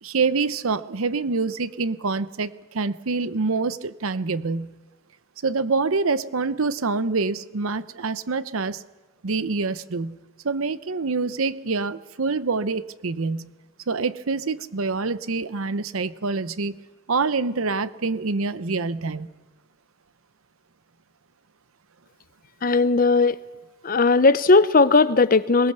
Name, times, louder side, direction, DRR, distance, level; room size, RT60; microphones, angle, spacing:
voice 1, 0.0-4.7 5.4-8.8 9.2-10.2 10.4-13.5 13.9-16.8 17.1-19.3, right 4 dB, 80° right, 14 dB, 0.8 m, -26 dB
voice 2, 22.6-23.4 23.8-25.7, left 3 dB, 40° left, 15 dB, 0.6 m, -17 dB
22.5 x 19.5 x 6.8 m, 1.2 s
head